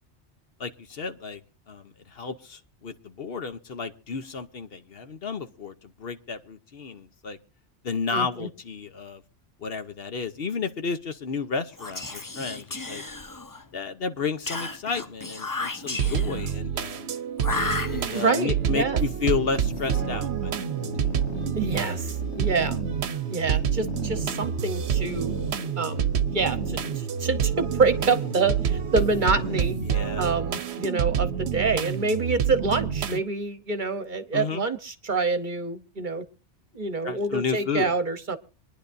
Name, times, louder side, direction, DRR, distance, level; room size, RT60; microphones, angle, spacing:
voice 1, 0.6-1.4 1.7-7.4 7.8-9.2 9.6-13.0 13.7-17.1 17.9-20.9 29.8-30.3 34.3-34.6 37.0-37.9, left 5 dB, 60° left, 9 dB, 1.1 m, -32 dB
voice 2, 8.1-8.5 18.1-19.1 21.6-22.8 23.3-25.3 25.8-29.8 30.2-36.2 36.7-38.4, right 4 dB, 45° right, 11 dB, 1.1 m, -27 dB
Whispering, 11.7-13.7 14.5-16.5 17.4-18.4, left 3 dB, 20° left, 0.6 m, -33 dB
sound 1, 16.0-33.2, right 8 dB, 70° right, 1.0 m, -28 dB
sound 2, 19.3-29.7, left 7 dB, 75° left, 1.5 m, -41 dB
26.0 x 10.5 x 2.6 m, 0.34 s
omnidirectional pair, 1.2 m